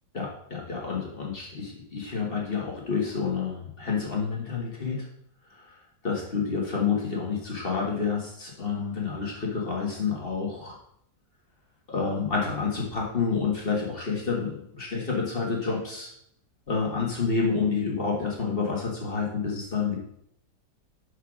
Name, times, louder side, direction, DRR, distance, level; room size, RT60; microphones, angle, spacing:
voice 1, 0.1-5.0 6.0-10.7 11.9-16.1 16.7-20.0, left 5 dB, 35° left, -2 dB, 1.6 m, -29 dB
5.6 x 5.0 x 6.1 m, 0.71 s
omnidirectional pair, 1.8 m